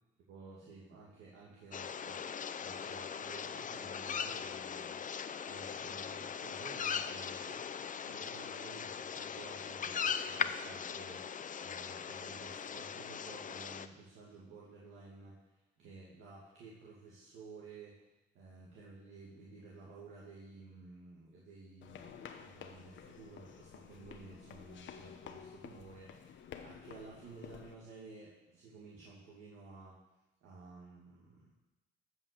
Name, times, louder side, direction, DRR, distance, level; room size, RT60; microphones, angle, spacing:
voice 1, 0.3-2.2 2.6-11.3 11.6-18.0 18.3-30.0 30.4-31.5, right 3 dB, 85° right, -5 dB, 2.4 m, -54 dB
sound 1, 1.7-13.9, left 7 dB, 40° left, 0.6 m, -40 dB
sound 2, 21.8-27.7, left 8 dB, 70° left, 1.1 m, -51 dB
14.5 x 5.6 x 6.9 m, 1.0 s
cardioid pair, 90°, 20 cm